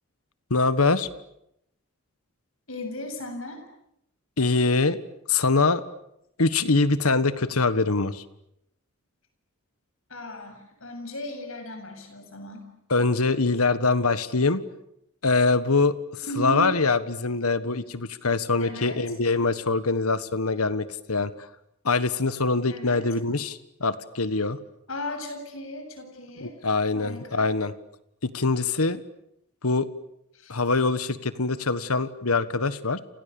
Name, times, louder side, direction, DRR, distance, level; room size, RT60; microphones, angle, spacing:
voice 1, 0.5-1.1 4.4-5.0 5.3-5.8 6.4-8.2 12.9-14.6 15.2-21.5 21.8-24.6 26.4-27.7 28.2-29.0 29.6-29.9 30.5-33.0, left 3 dB, 85° left, 14 dB, 1.5 m, -24 dB
voice 2, 2.7-3.6 10.1-12.7 16.2-16.8 18.6-19.0 22.7-23.1 24.9-26.6 26.9-27.5 30.3-30.5, equal, 65° left, 6 dB, 7.5 m, -36 dB
30.0 x 28.0 x 7.1 m, 0.79 s
head